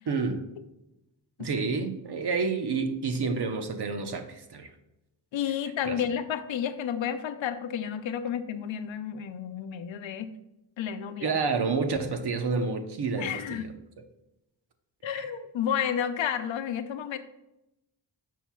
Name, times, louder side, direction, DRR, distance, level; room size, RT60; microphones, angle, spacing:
voice 1, 0.1-0.4 1.4-4.7 5.8-6.1 11.2-13.6 15.0-15.3, right 4 dB, 60° right, 6 dB, 0.9 m, -29 dB
voice 2, 5.3-10.3 10.8-11.4 13.1-13.7 15.0-17.2, left 9 dB, 90° left, 10 dB, 0.7 m, -31 dB
10.0 x 6.5 x 2.3 m, 0.91 s
wide cardioid pair, 110°, 45 cm